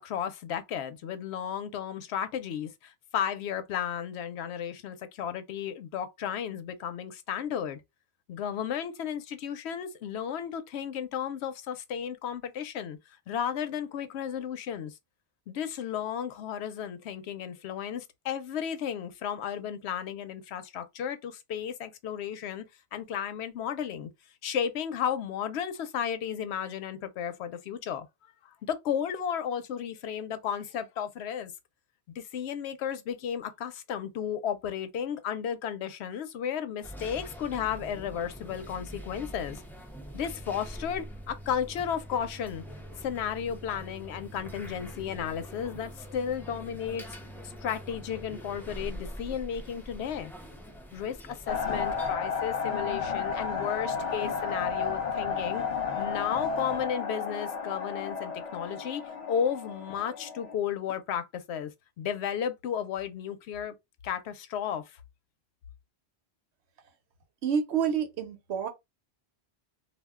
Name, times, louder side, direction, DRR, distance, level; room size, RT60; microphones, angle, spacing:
voice 1, 0.0-7.8 8.3-13.0 13.3-14.9 15.5-22.6 22.9-24.1 24.4-28.1 28.6-31.5 32.2-39.6 40.1-42.6 43.0-47.0 47.6-50.3 50.9-55.6 56.0-59.0 59.3-61.7 62.0-63.7 64.0-64.8, left 8 dB, 85° left, 0.8 m, -33 dB
sound 1, 36.8-52.2, equal, 5° left, 0.4 m, -44 dB
sound 2, 51.5-60.5, left 6 dB, 45° left, 0.9 m, -32 dB
voice 2, 67.4-68.7, right 7 dB, 85° right, 1.0 m, -28 dB
2.4 x 2.1 x 3.5 m
omnidirectional pair, 1.1 m